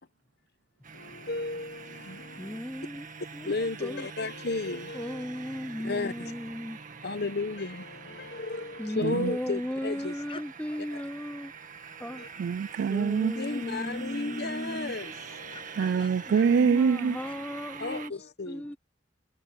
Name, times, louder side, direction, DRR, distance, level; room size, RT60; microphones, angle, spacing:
sound 1, 0.8-18.1, right 5 dB, 45° right, 1.9 m, -45 dB
voice 1, 0.9-2.6 3.4-5.2 5.8-6.3 7.0-10.1 12.0-12.3 13.4-16.0 17.8-18.7, left 3 dB, 60° left, 1.1 m, -34 dB
voice 2, 2.4-3.1 3.3-3.5 3.8-4.1 4.9-6.8 8.8-11.5 12.0-12.3 12.9-15.0 16.2-18.1 18.5-18.8, left 1 dB, 5° left, 0.6 m, -36 dB
sound 2, 8.5-8.6 9.0-11.6 11.9-12.0 15.3-17.7, left 4 dB, 30° left, 7.2 m, -51 dB
voice 3, 9.0-9.4 12.4-13.3 15.8-17.2, right 6 dB, 65° right, 0.3 m, -25 dB
head